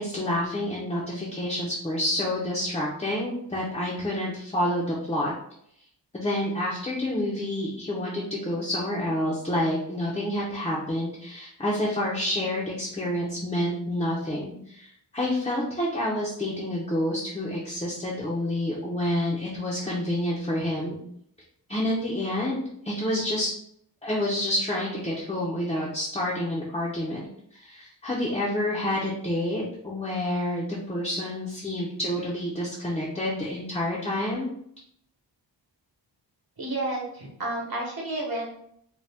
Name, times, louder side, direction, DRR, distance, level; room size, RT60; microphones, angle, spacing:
voice 1, 0.0-5.3 6.1-21.0 21.7-23.5 24.0-27.3 27.5-34.5, left 1 dB, 15° left, -5 dB, 0.5 m, -28 dB
voice 2, 36.6-38.5, right 2 dB, 55° right, -3 dB, 1.1 m, -31 dB
2.7 x 2.1 x 3.3 m, 0.69 s
wide cardioid pair, 140°, 43 cm